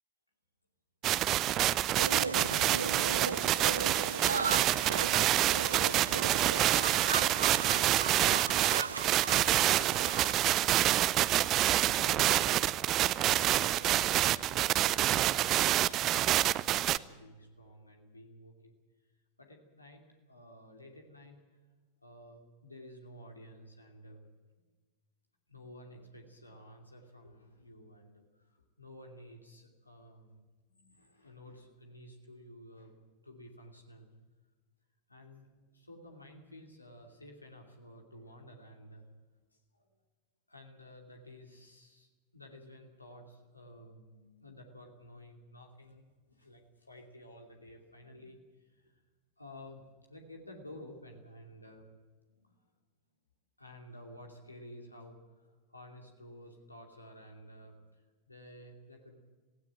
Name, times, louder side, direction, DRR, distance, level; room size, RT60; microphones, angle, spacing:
sound 1, 1.0-17.0, right 13 dB, 35° right, 0.6 m, -27 dB
sound 2, 2.0-10.3, right 5 dB, 75° right, 0.7 m, -37 dB
voice 1, 2.1-5.1 5.7-6.7 7.3-9.7 11.9-12.7 13.3-18.7 19.4-20.0 20.3-21.4 22.0-24.3 25.5-28.5 28.8-30.4 30.7-34.1 35.1-35.5 35.7-39.0 39.7-39.8 40.5-42.1 42.3-46.0 46.3-48.4 48.7-48.9 49.4-51.8 52.3-52.5 53.6-59.2, equal, 85° left, 2 dB, 2.7 m, -52 dB
17.5 x 16.5 x 9.0 m, 1.4 s
figure-of-eight pair, 90°, 0 cm